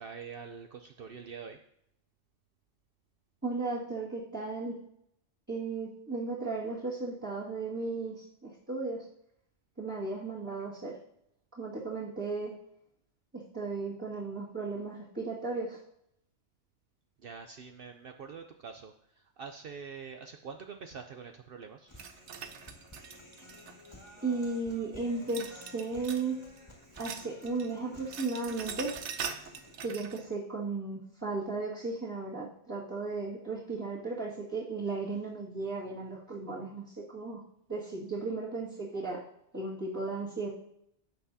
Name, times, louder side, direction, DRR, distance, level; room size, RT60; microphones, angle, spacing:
voice 1, 0.0-1.6 17.2-22.0, right 6 dB, 60° right, 5 dB, 0.8 m, -45 dB
voice 2, 3.4-4.8 5.5-9.1 9.8-11.0 11.6-12.6 13.3-15.8 24.2-26.4 27.0-28.9 29.8-37.4 37.7-39.2 39.5-40.5, right 3 dB, 15° right, -11 dB, 2.0 m, -35 dB
Human voice, 21.9-29.9, left 1 dB, 25° left, 1.9 m, -54 dB
sound 1, 22.0-24.1 25.3-26.3 26.6-27.7 28.0-30.2, right 6 dB, 80° right, 1.0 m, -42 dB
15.5 x 5.8 x 2.8 m, 0.74 s
omnidirectional pair, 1.2 m